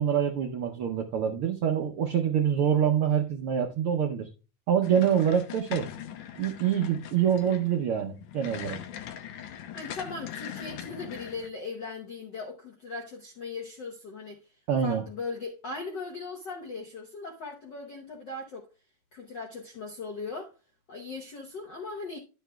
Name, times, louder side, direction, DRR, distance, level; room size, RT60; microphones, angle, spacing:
voice 1, 0.0-4.3 4.7-5.9 6.4-8.8 14.7-15.0, right 8 dB, 80° right, 1.2 m, -26 dB
sound 1, 4.8-11.5, left 10 dB, 90° left, 2.3 m, -41 dB
voice 2, 9.7-14.4 14.8-18.7 19.1-20.5 20.9-22.2, left 3 dB, 70° left, 1.0 m, -38 dB
11.5 x 7.3 x 2.3 m
omnidirectional pair, 3.4 m